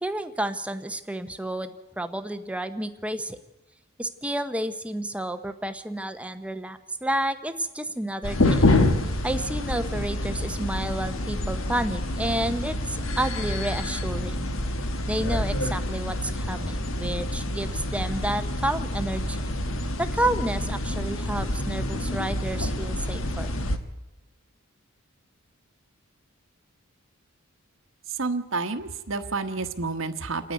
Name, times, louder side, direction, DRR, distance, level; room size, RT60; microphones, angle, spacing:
voice 1, 0.0-3.4 4.0-8.6 9.2-14.5 15.1-19.4 20.0-23.5, right 1 dB, 5° right, 9 dB, 0.9 m, -30 dB
sound 1, 8.2-23.8, left 1 dB, 65° left, 1.4 m, -27 dB
voice 2, 28.1-30.5, right 3 dB, 65° right, 8 dB, 1.3 m, -30 dB
28.5 x 10.0 x 9.4 m, 1.1 s
head